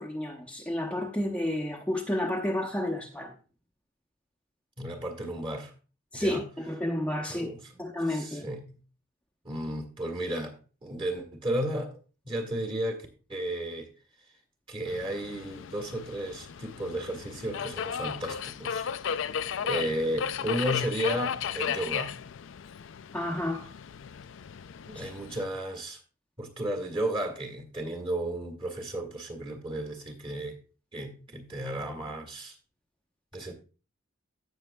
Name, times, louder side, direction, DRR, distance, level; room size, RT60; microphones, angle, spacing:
voice 1, 0.0-3.3 6.1-8.5 23.1-23.7 24.9-25.1, left 1 dB, 5° left, 0.8 m, -31 dB
voice 2, 4.8-5.7 6.1-6.4 7.2-7.8 8.1-8.6 9.4-10.6 10.8-12.0 12.2-13.9 14.7-18.9 19.6-22.1 24.8-26.0 26.4-30.6 30.9-32.6 33.3-33.5, right 1 dB, 25° right, 1.7 m, -33 dB
Subway metro underground, 14.9-25.4, left 7 dB, 70° left, 0.4 m, -35 dB
16.5 x 6.3 x 2.2 m
head